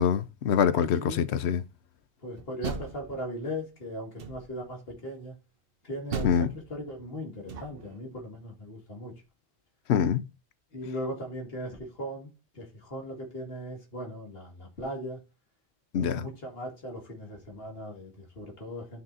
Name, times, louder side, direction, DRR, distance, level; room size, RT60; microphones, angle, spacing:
voice 1, 0.0-1.6 6.2-6.5 9.9-10.2 15.9-16.3, left 8 dB, 80° left, 0.9 m, -25 dB
voice 2, 2.2-5.3 5.8-9.1 10.7-12.3 12.6-15.2 16.0-19.0, equal, 60° left, 2.3 m, -38 dB
Door, 2.4-3.6 4.2-4.7 6.1-8.0, right 5 dB, 60° right, 1.0 m, -38 dB
12.0 x 5.6 x 2.7 m
omnidirectional pair, 1.1 m